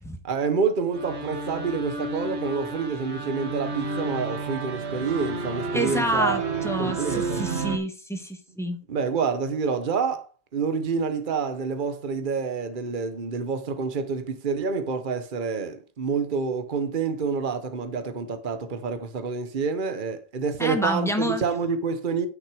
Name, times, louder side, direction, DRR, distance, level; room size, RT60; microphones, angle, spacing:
voice 1, 0.2-6.4 6.8-7.4 8.9-10.3 10.5-22.3, right 5 dB, 50° right, 1.2 m, -28 dB
sound 1, 0.9-7.8, right 3 dB, 75° right, 1.7 m, -31 dB
voice 2, 5.7-8.8 20.6-21.4, equal, ahead, 1.5 m, -28 dB
9.8 x 6.0 x 4.9 m
omnidirectional pair, 1.1 m